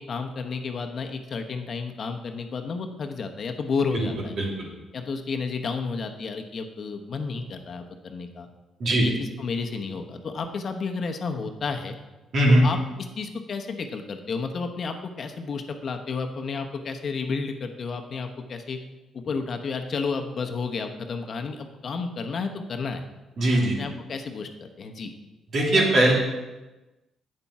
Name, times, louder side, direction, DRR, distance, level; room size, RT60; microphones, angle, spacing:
voice 1, 0.0-4.3 4.9-8.5 8.9-12.0 12.5-12.8 13.2-18.8 19.1-23.1 23.8-24.5 24.8-25.1, left 4 dB, 50° left, 5 dB, 1.0 m, -31 dB
voice 2, 12.3-12.6 23.4-23.7 25.5-26.1, right 1 dB, 60° right, -2 dB, 2.8 m, -19 dB
8.8 x 7.1 x 4.8 m, 1.1 s
cardioid pair, 90°, 0 cm